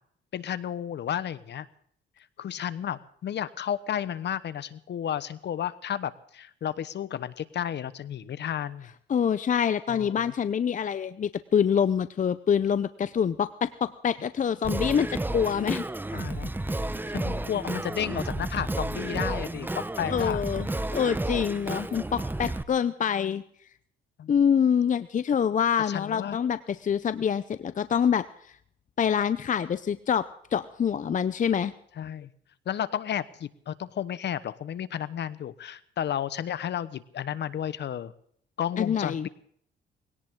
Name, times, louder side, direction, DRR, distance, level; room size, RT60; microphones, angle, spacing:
voice 1, 0.3-1.7 2.4-8.9 9.9-10.3 16.1-16.5 17.1-20.4 24.2-24.3 25.8-26.4 32.0-32.3 32.7-38.1 38.6-39.3, left 9 dB, 60° left, 15 dB, 1.1 m, -32 dB
voice 2, 9.1-15.8 20.1-23.4 24.3-28.3 29.0-31.7 38.8-39.3, left 7 dB, 40° left, 14 dB, 0.7 m, -26 dB
Singing, 14.6-22.6, right 2 dB, 10° right, 0.8 m, -32 dB
21.0 x 17.5 x 3.8 m, 0.63 s
cardioid pair, 90°, 20 cm